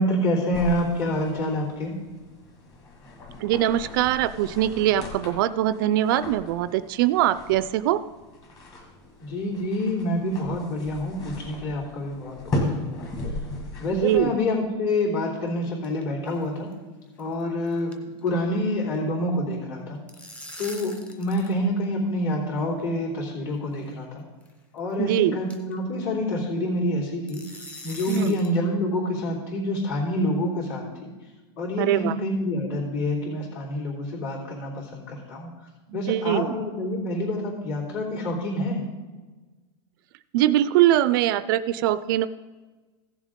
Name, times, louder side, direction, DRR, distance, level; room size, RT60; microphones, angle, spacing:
voice 1, 0.0-2.0 9.2-13.1 13.8-16.7 17.2-20.0 20.6-24.2 24.7-27.4 27.8-31.1 31.6-35.5 35.9-38.8, left 1 dB, 55° left, -8 dB, 3.4 m, -27 dB
sound 1, 0.5-14.2, left 1 dB, 25° left, 2.1 m, -37 dB
voice 2, 3.4-8.0 13.9-14.3 25.0-25.4 28.1-28.4 31.8-32.2 35.9-36.6 40.3-42.3, right 12 dB, 50° right, 15 dB, 0.4 m, -22 dB
sound 2, 15.3-16.0 16.3-16.5 16.7-16.8 17.2-17.4 17.7-18.5 18.7-19.0 19.8-21.6 21.8-21.9 22.8-22.9 23.8-23.9 24.4-24.5 24.9-25.0 25.5-25.8 27.3-28.6, left 1 dB, 10° left, 0.9 m, -43 dB
16.0 x 7.1 x 3.7 m, 1.3 s
supercardioid pair, 160°, 15 cm